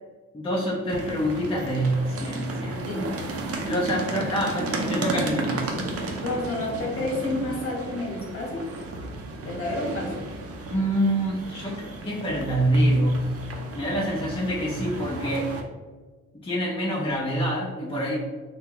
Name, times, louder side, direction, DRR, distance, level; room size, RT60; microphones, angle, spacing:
voice 1, 0.3-2.8 3.6-5.7 10.7-13.3 13.7-15.6 16.3-18.2, equal, 20° left, -5 dB, 0.6 m, -26 dB
sound 1, 0.9-15.6, right 2 dB, 55° right, 0.5 m, -34 dB
voice 2, 2.6-3.2 5.7-5.9 6.2-8.7 9.4-10.2, left 2 dB, 50° left, -3 dB, 1.0 m, -30 dB
2.7 x 2.2 x 3.7 m, 1.3 s
cardioid pair, 100°, 29 cm